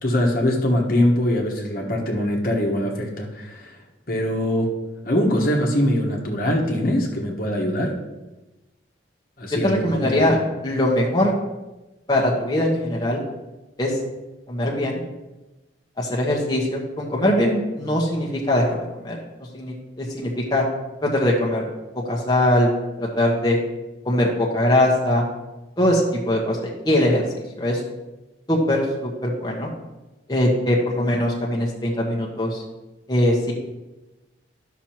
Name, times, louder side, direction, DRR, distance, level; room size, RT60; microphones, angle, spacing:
voice 1, 0.0-3.8 4.1-4.8 5.0-8.0 9.4-10.2, left 1 dB, 50° left, 0 dB, 1.3 m, -22 dB
voice 2, 9.6-10.4 10.6-11.3 12.1-13.2 13.8-14.0 14.5-15.0 16.0-19.2 19.5-20.6 21.0-21.6 21.9-22.7 23.0-23.6 24.0-25.2 25.8-27.2 27.6-27.8 28.5-29.7 30.3-32.6 33.1-33.5, left 1 dB, 20° left, -3 dB, 1.1 m, -21 dB
12.0 x 6.0 x 3.0 m, 1.1 s
head